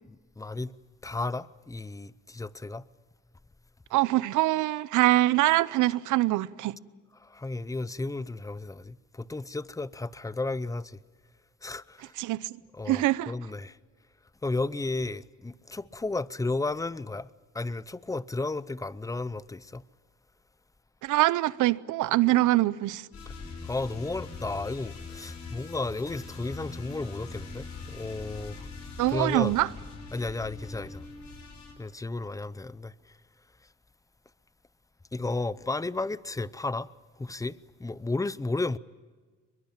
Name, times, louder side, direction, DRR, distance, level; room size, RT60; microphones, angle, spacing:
voice 1, 0.4-0.8 1.0-2.9 7.2-11.0 11.6-12.1 12.7-13.8 14.4-17.3 17.5-19.8 23.6-28.7 29.1-29.6 30.1-31.0 31.8-32.9 35.1-36.9 37.2-38.8, left 2 dB, 10° left, 0.6 m, -33 dB
voice 2, 3.9-6.8 12.2-12.6 12.9-13.3 21.0-23.1 29.0-29.7, right 16 dB, 85° right, 0.7 m, -24 dB
sound 1, 23.1-31.7, left 4 dB, 65° left, 5.6 m, -42 dB
22.5 x 22.5 x 8.9 m
cardioid pair, 90°, 30 cm